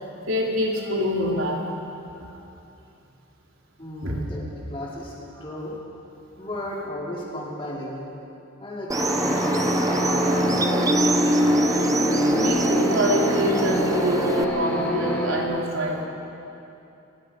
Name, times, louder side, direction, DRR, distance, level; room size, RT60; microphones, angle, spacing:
voice 1, 0.3-1.7 2.1-2.3 4.0-4.2 12.4-16.1, equal, 75° right, -2 dB, 3.4 m, -25 dB
voice 2, 3.8-4.4 4.7-5.1 5.4-5.7 6.4-8.0 8.6-11.0, left 1 dB, 25° left, -5 dB, 4.6 m, -34 dB
sound 1, 8.9-15.4, left 1 dB, 10° left, 3.6 m, -26 dB
sound 2, 8.9-14.4, right 1 dB, 15° right, 0.6 m, -24 dB
30.0 x 17.0 x 5.2 m, 2.8 s
head